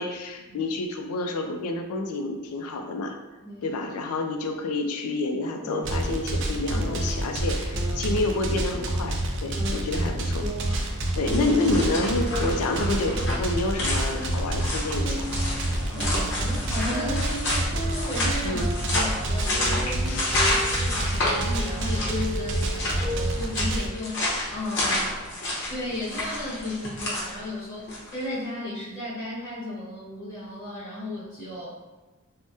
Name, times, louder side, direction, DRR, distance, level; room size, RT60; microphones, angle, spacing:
voice 1, 0.0-3.2 3.6-10.4 11.1-15.3 18.4-18.7 20.1-20.5, left 2 dB, 90° left, 5 dB, 0.4 m, -28 dB
voice 2, 3.4-3.8 8.0-8.2 11.2-11.3 15.9-25.1 25.7-31.7, left 1 dB, 15° left, -11 dB, 1.2 m, -35 dB
sound 1, 5.6-7.3 7.7-9.3 9.6-11.8 12.2-14.7 15.0-19.2 19.4-23.4, equal, 15° right, 1.0 m, -36 dB
sound 2, 5.8-23.9, right 1 dB, 55° right, 0.4 m, -28 dB
sound 3, 10.6-28.2, left 1 dB, 55° left, 0.7 m, -30 dB
3.4 x 2.1 x 2.6 m, 1.2 s
head